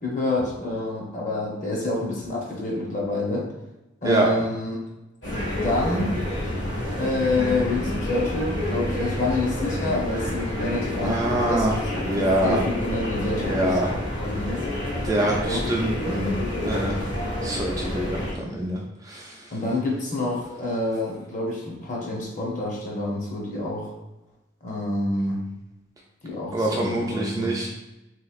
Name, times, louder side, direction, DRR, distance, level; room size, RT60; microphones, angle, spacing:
voice 1, 0.0-3.5 4.0-4.9 5.6-6.1 7.0-11.7 12.0-14.7 15.4-15.6 19.5-23.9 24.6-25.4 26.2-27.6, left 2 dB, 40° left, -3 dB, 0.8 m, -28 dB
sound 1, 5.2-18.3, left 1 dB, 65° left, 1.4 m, -28 dB
voice 2, 11.0-11.8 12.1-12.6 13.5-13.9 15.0-16.4 16.6-17.0 17.4-19.4 26.5-27.7, right 1 dB, 20° right, -2 dB, 0.3 m, -25 dB
3.2 x 3.0 x 2.4 m, 0.96 s
head